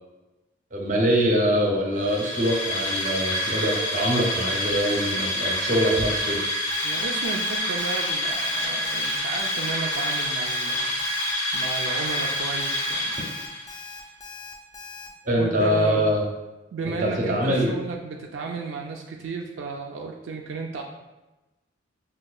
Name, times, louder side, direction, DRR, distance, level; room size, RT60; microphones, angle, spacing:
voice 1, 0.7-6.4 15.2-16.2 17.0-17.7, equal, 45° right, -1 dB, 0.6 m, -23 dB
sound 1, 2.0-13.8, left 1 dB, 75° left, 1.1 m, -27 dB
Alarm, 6.7-15.1, left 4 dB, 20° left, 0.4 m, -41 dB
voice 2, 6.8-10.9 11.5-13.2 15.4-16.1 16.7-20.8, right 4 dB, 80° right, 0 dB, 0.3 m, -33 dB
5.2 x 2.2 x 2.3 m, 1.1 s
head